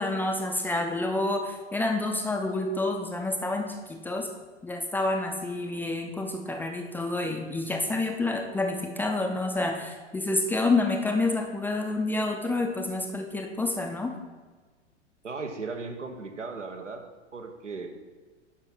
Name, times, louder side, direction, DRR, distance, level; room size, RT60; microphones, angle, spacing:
voice 1, 0.0-4.3 4.6-14.2, left 2 dB, 5° left, 2 dB, 0.5 m, -28 dB
voice 2, 15.2-17.0 17.3-17.9, right 4 dB, 80° right, 5 dB, 1.3 m, -36 dB
10.0 x 6.0 x 4.3 m, 1.4 s
figure-of-eight pair, 100°, 35 cm